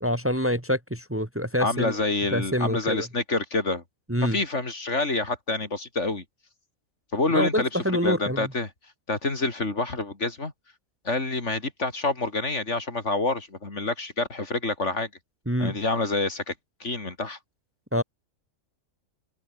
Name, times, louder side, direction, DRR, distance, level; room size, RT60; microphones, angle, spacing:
voice 1, 0.0-2.0 2.3-3.1 4.1-4.4 7.3-8.5 15.5-15.7 17.9-18.0, equal, 10° right, 2.1 m, -26 dB
voice 2, 1.6-3.8 4.3-6.2 7.1-8.7 9.1-10.5 11.1-15.1 15.6-16.5 16.8-17.4, left 3 dB, 60° left, 3.6 m, -27 dB
omnidirectional pair, 1.4 m